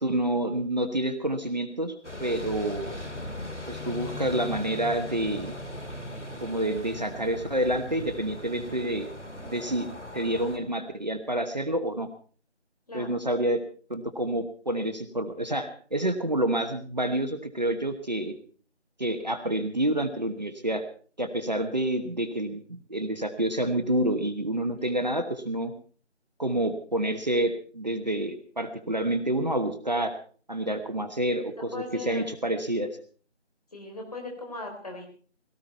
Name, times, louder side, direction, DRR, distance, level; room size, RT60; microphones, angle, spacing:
voice 1, 0.0-2.9 3.7-5.6 6.4-9.1 9.4-9.9 10.1-12.1 12.9-13.6 13.9-18.3 19.0-20.8 21.2-22.6 22.9-25.7 26.4-30.1 30.5-32.9, right 1 dB, 40° right, 8 dB, 1.1 m, -28 dB
sound 1, 2.0-10.6, left 1 dB, 85° left, 2.5 m, -39 dB
voice 2, 8.4-8.8 12.9-13.2 24.8-24.9 31.5-32.4 33.7-35.1, left 2 dB, 35° left, 2 dB, 3.9 m, -39 dB
17.5 x 14.5 x 4.4 m, 0.42 s
figure-of-eight pair, 170°, 35 cm